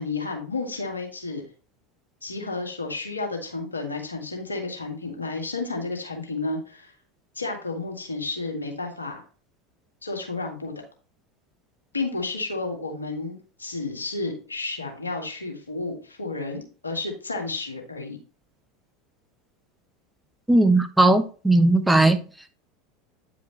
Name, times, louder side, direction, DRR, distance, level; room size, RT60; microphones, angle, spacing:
voice 1, 0.0-1.5 2.2-6.9 7.4-9.2 10.0-10.7 11.9-18.2, left 3 dB, 90° left, 1.7 m, -31 dB
voice 2, 20.5-22.2, right 2 dB, 5° right, 0.9 m, -18 dB
9.3 x 5.0 x 3.2 m
figure-of-eight pair, 80°, 0 cm